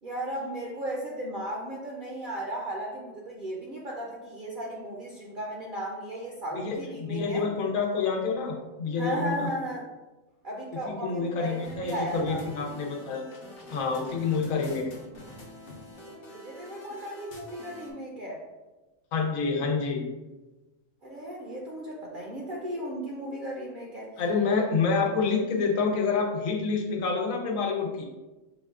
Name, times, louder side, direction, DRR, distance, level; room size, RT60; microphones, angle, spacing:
voice 1, 0.0-7.4 9.0-9.9 10.4-12.4 16.1-18.4 21.0-24.1, right 1 dB, 50° right, -3 dB, 0.7 m, -35 dB
voice 2, 6.6-9.5 10.9-13.2 13.7-14.9 19.1-20.1 24.2-28.0, left 4 dB, 85° left, 1 dB, 1.2 m, -28 dB
sound 1, 11.4-17.9, left 1 dB, 50° left, 1.0 m, -46 dB
5.9 x 2.2 x 3.6 m, 1.1 s
omnidirectional pair, 1.4 m